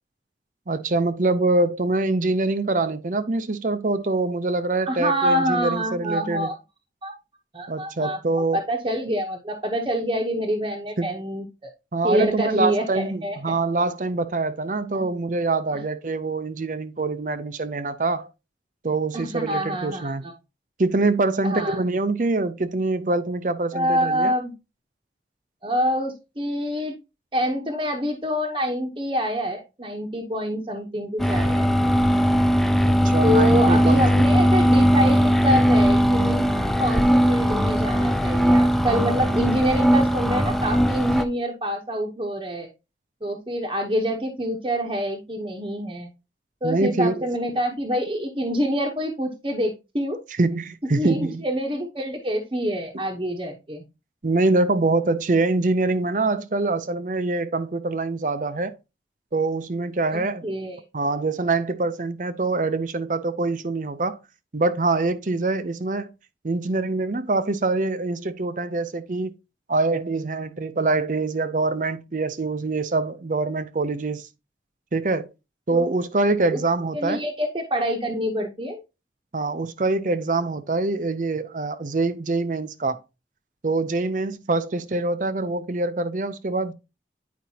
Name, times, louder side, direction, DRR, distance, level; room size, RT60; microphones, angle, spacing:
voice 1, 0.7-6.5 7.7-8.6 11.0-11.2 11.9-18.3 18.8-20.3 20.8-24.3 32.8-34.4 46.6-47.3 50.4-51.4 52.9-53.0 54.2-58.7 59.3-60.4 60.9-64.2 64.5-66.1 66.4-69.3 69.7-74.3 74.9-75.3 75.7-77.2 79.3-83.0 83.6-86.7, right 3 dB, 45° right, 0.6 m, -24 dB
voice 2, 4.9-6.6 7.0-7.1 7.5-8.2 8.5-11.7 12.0-13.4 14.9-15.1 19.1-20.3 21.4-21.8 23.7-24.5 25.6-26.9 27.3-31.7 33.2-36.5 36.8-42.7 43.2-46.1 46.6-50.2 51.0-53.8 60.1-60.8 75.7-75.9 76.5-76.6 76.9-78.8, equal, 25° right, 0.9 m, -26 dB
sound 1, 31.2-41.3, equal, ahead, 0.4 m, -19 dB
9.3 x 5.1 x 2.8 m
head